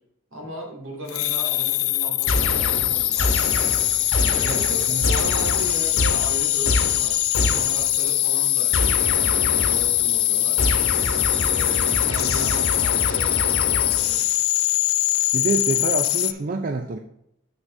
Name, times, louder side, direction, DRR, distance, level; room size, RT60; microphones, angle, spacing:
voice 1, 0.3-3.6 3.9-10.6 11.5-14.2, right 1 dB, 70° right, -1 dB, 2.4 m, -36 dB
sound 1, 1.1-16.3, left 17 dB, 85° left, 0.4 m, -22 dB
sound 2, 2.2-15.7, left 3 dB, 5° left, 1.4 m, -37 dB
sound 3, 2.3-7.9 8.7-10.0 10.6-14.3, left 2 dB, 65° left, 1.0 m, -26 dB
voice 2, 4.2-5.1 15.3-17.0, right 4 dB, 40° right, 6 dB, 0.4 m, -27 dB
7.6 x 6.2 x 3.2 m, 0.77 s
head